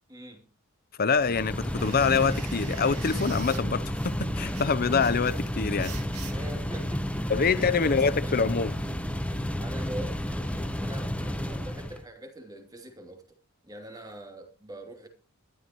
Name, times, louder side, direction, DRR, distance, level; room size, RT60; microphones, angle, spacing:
voice 1, 0.1-0.4 6.3-7.5 7.8-8.5 9.6-13.2 13.6-15.1, right 1 dB, 15° right, 2.7 m, -43 dB
voice 2, 1.0-5.9 7.3-8.7, left 5 dB, 45° left, 0.7 m, -25 dB
sound 1, 1.1-9.4, right 6 dB, 90° right, 2.2 m, -48 dB
sound 2, 1.2-12.0, equal, 5° left, 0.9 m, -31 dB
21.0 x 12.5 x 3.0 m
head